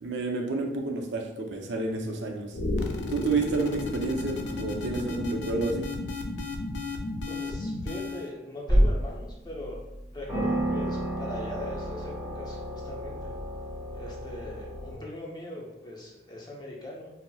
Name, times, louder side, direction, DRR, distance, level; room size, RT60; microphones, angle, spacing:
voice 1, 0.0-2.5 3.1-5.9, right 3 dB, 85° right, 2 dB, 0.5 m, -30 dB
sound 1, 2.5-8.3, left 2 dB, 80° left, 0.4 m, -33 dB
voice 2, 7.3-9.8 10.1-13.3 13.9-17.1, left 1 dB, 25° left, -3 dB, 0.6 m, -40 dB
sound 2, 8.7-9.2 9.7-9.8 10.3-14.9, right 1 dB, 10° right, 1.0 m, -29 dB
4.0 x 2.0 x 2.2 m, 0.90 s
head